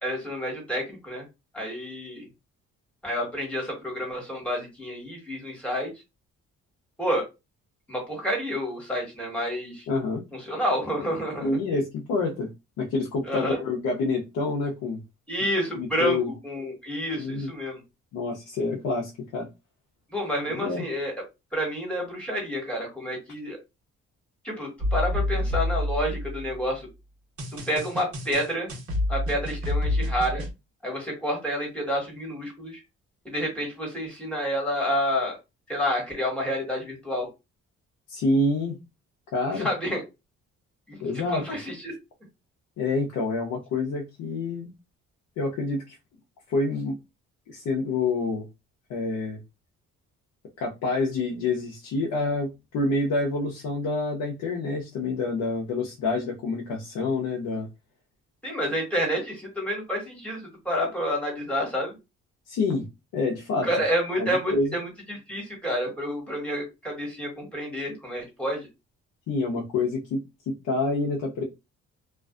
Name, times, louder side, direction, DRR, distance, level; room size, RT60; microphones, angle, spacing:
voice 1, 0.0-1.3 1.5-2.3 3.0-5.9 7.0-7.2 7.9-9.8 10.3-11.6 13.3-13.6 15.3-17.8 20.1-21.1 21.5-23.6 24.4-26.9 27.5-28.7 29.1-30.4 30.8-32.8 33.2-35.4 35.7-37.3 39.5-40.0 40.9-41.9 58.4-62.0 63.6-68.7, equal, 5° left, 1.4 m, -29 dB
voice 2, 9.9-10.2 11.4-12.5 12.8-15.0 15.8-16.3 17.1-17.5 18.1-19.5 20.5-20.8 38.1-38.8 39.3-39.7 41.0-41.4 42.8-44.7 45.4-46.0 46.5-47.0 47.5-48.4 48.9-49.4 50.6-57.7 62.5-62.9 63.1-63.7 64.2-64.7 69.3-71.4, left 3 dB, 80° left, 0.7 m, -27 dB
sound 1, 24.8-26.6 27.4-30.5, left 1 dB, 50° right, 1.0 m, -28 dB
2.4 x 2.3 x 2.4 m
cardioid pair, 90°, 30 cm